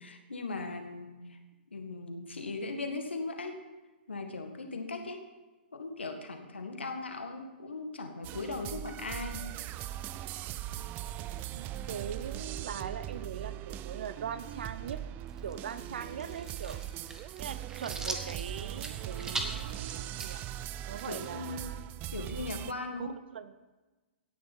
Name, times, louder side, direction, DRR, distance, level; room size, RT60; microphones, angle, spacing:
voice 1, 0.0-1.4 1.7-3.6 4.1-5.3 5.7-9.5 21.1-21.7 22.1-23.2, left 3 dB, 90° left, 5 dB, 1.8 m, -38 dB
sound 1, 8.2-22.7, right 12 dB, 30° right, 0.4 m, -40 dB
voice 2, 11.5-15.0 15.4-16.8 17.4-20.4 20.9-21.9 23.0-23.6, right 8 dB, 65° right, 14 dB, 0.7 m, -41 dB
sound 2, 15.3-21.7, right 2 dB, 10° right, 1.3 m, -42 dB
17.0 x 7.0 x 5.5 m, 1.2 s
hypercardioid pair, 120°, 6 cm